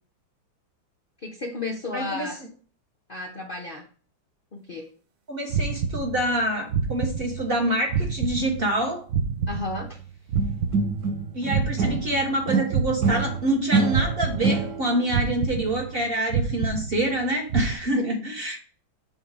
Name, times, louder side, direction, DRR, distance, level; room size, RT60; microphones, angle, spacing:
voice 1, 1.2-2.4 3.1-3.9 4.5-4.9 9.5-10.0 18.1-18.3, left 3 dB, 75° left, 1 dB, 0.4 m, -33 dB
voice 2, 1.9-2.3 5.3-9.1 11.3-18.6, right 1 dB, 40° right, 1 dB, 1.0 m, -26 dB
sound 1, 5.5-6.4 6.7-7.6 7.9-10.0 10.3-12.4 12.7-13.6 13.9-14.8 15.1-16.0 16.3-17.2 17.5-17.7, right 6 dB, 75° right, 0.6 m, -28 dB
sound 2, 10.4-12.1 12.5-15.1, right 4 dB, 60° right, 1.3 m, -26 dB
7.3 x 3.6 x 4.8 m, 0.43 s
omnidirectional pair, 2.1 m